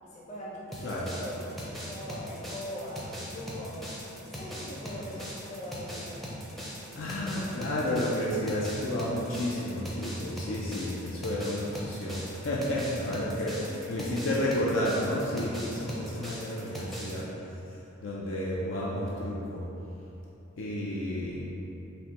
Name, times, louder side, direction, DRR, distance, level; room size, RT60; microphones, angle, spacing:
voice 1, 0.0-3.8 4.3-6.1 13.3-14.0, left 1 dB, 35° left, -6 dB, 0.8 m, -41 dB
sound 1, 0.7-17.2, equal, ahead, 0.5 m, -40 dB
voice 2, 6.9-13.5 13.9-17.3 18.0-19.6 20.6-21.5, left 1 dB, 65° left, -5 dB, 0.4 m, -31 dB
5.8 x 2.1 x 2.9 m, 2.9 s
head